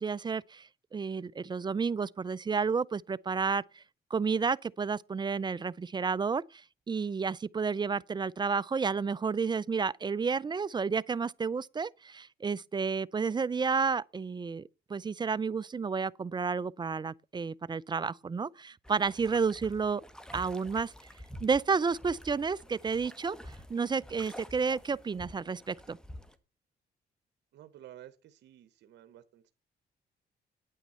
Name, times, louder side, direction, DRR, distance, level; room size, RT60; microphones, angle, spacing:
voice 1, 0.0-3.8 4.1-20.0 20.3-20.9 21.4-26.0, right 5 dB, 25° right, 0.5 m, -31 dB
sound 1, 18.8-26.4, equal, 5° left, 1.3 m, -49 dB
voice 2, 27.5-29.5, right 12 dB, 80° right, 1.0 m, -52 dB
9.4 x 9.1 x 5.5 m
cardioid pair, 85°, 18 cm